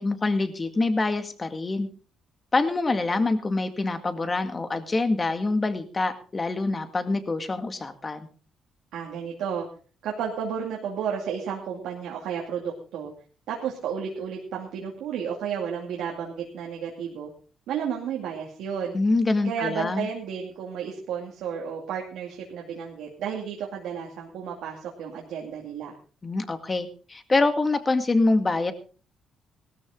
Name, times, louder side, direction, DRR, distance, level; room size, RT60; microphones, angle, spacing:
voice 1, 0.0-1.9 2.5-8.3 18.9-20.1 26.2-28.7, left 3 dB, 25° left, 9 dB, 2.0 m, -25 dB
voice 2, 8.9-9.7 10.0-13.1 13.5-17.3 17.7-19.0 19.4-25.9, right 7 dB, 85° right, -1 dB, 2.6 m, -32 dB
17.5 x 13.5 x 3.8 m, 0.38 s
cardioid pair, 90°, 0 cm